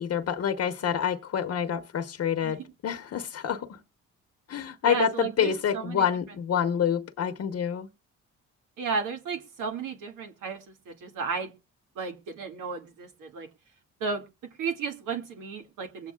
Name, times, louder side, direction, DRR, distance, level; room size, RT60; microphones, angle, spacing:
voice 1, 0.0-3.8 4.5-7.9, left 8 dB, 55° left, 0.9 m, -27 dB
voice 2, 4.8-6.1 8.8-11.5 12.0-13.5 14.0-14.2 14.6-16.1, right 5 dB, 85° right, 2.1 m, -33 dB
22.5 x 8.3 x 2.3 m
cardioid pair, 90°, 30 cm